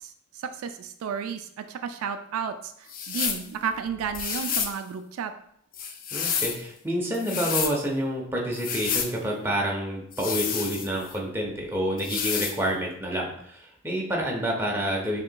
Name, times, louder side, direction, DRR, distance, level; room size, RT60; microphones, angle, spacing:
voice 1, 0.0-5.3, right 6 dB, 75° right, 9 dB, 0.3 m, -33 dB
sound 1, 2.9-3.5 4.1-4.8 5.7-6.6 7.1-7.8 8.5-9.1 10.1-11.1 12.0-12.6, left 7 dB, 40° left, 0.4 m, -29 dB
voice 2, 6.1-15.2, equal, 10° right, -2 dB, 0.7 m, -28 dB
5.3 x 2.9 x 2.2 m, 0.69 s
head